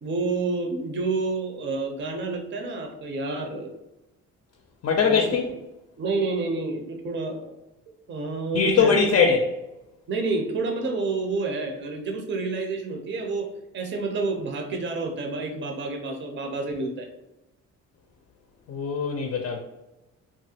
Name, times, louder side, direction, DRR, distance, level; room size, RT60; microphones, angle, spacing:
voice 1, 0.0-3.7 5.0-5.5 6.0-7.6 8.1-9.0 10.1-17.1, right 3 dB, 40° right, 3 dB, 0.6 m, -29 dB
voice 2, 4.8-5.5 8.5-9.5 18.7-19.6, left 5 dB, 50° left, 2 dB, 0.5 m, -21 dB
3.1 x 2.4 x 2.7 m, 0.95 s
cardioid pair, 90°, 30 cm